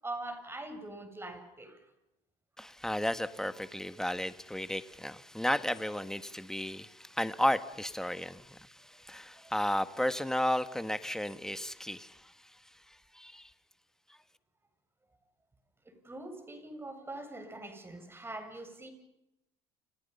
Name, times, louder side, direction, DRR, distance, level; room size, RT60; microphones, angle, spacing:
voice 1, 0.0-1.9 9.4-9.5 15.8-18.9, right 2 dB, 15° right, 7.9 m, -43 dB
voice 2, 2.6-12.3 12.9-13.5 14.1-14.2, left 1 dB, 5° left, 1.8 m, -33 dB
30.0 x 29.5 x 5.8 m
supercardioid pair, 90°, 16 cm